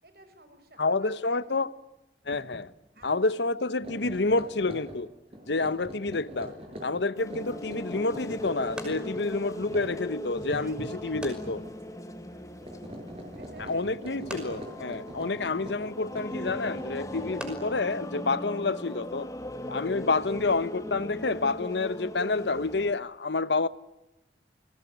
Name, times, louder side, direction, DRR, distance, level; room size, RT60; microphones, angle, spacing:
voice 1, 0.0-1.7 2.9-3.6 4.0-4.4 10.6-12.9 13.3-14.6, right 1 dB, 60° right, 6.0 m, -56 dB
voice 2, 0.8-1.7 2.3-2.7 3.0-5.1 5.5-6.5 6.8-11.6 13.6-19.3 19.7-23.7, left 3 dB, 85° left, 1.0 m, -29 dB
sound 1, 2.3-2.6 3.0-3.1 3.7-11.7 12.0-12.3 12.6-17.7, equal, 35° right, 7.4 m, -43 dB
sound 2, 7.2-22.9, left 1 dB, 20° left, 2.1 m, -39 dB
sound 3, 8.6-19.1, equal, 5° right, 5.7 m, -47 dB
29.5 x 21.0 x 9.6 m
head